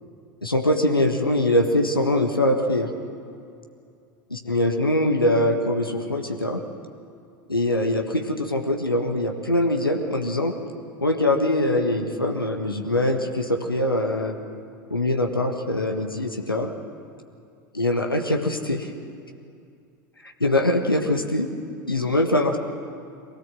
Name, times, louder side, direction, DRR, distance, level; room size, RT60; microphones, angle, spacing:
voice 1, 0.4-2.9 4.3-6.6 7.5-10.5 11.0-14.4 14.9-16.7 17.7-18.9 20.4-21.5 21.9-22.6, left 1 dB, 90° left, 4 dB, 1.4 m, -23 dB
23.5 x 17.5 x 7.7 m, 2.5 s
figure-of-eight pair, 80°, 11 cm